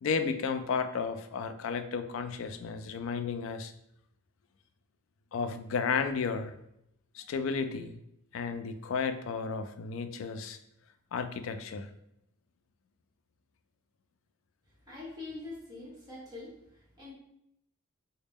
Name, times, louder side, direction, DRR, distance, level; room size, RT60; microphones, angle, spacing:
voice 1, 0.0-3.7 5.3-6.5 7.1-8.0 8.3-10.6 11.1-11.9, left 5 dB, 75° left, 9 dB, 0.3 m, -33 dB
voice 2, 14.8-17.1, left 3 dB, 20° right, -6 dB, 1.2 m, -44 dB
4.0 x 2.1 x 3.4 m, 0.78 s
head